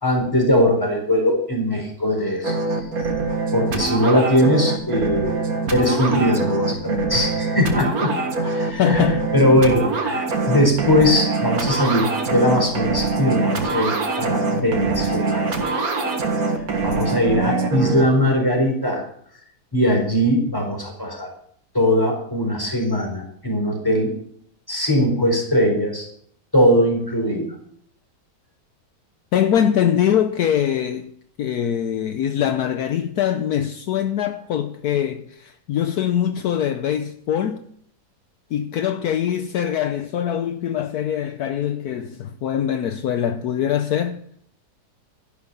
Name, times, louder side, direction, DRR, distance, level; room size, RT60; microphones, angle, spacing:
voice 1, 0.0-2.6 3.5-5.3 5.7-8.1 8.4-15.4 16.8-19.0 19.7-21.3 21.7-24.1 24.7-26.1 26.5-27.5, equal, 10° left, 4.4 m, -20 dB
sound 1, 2.4-18.0, right 3 dB, 60° right, 2.2 m, -24 dB
voice 2, 8.8-9.2 29.3-31.1 31.4-37.6 38.5-44.2, left 9 dB, 70° left, 1.2 m, -23 dB
13.0 x 11.5 x 5.6 m
omnidirectional pair, 1.8 m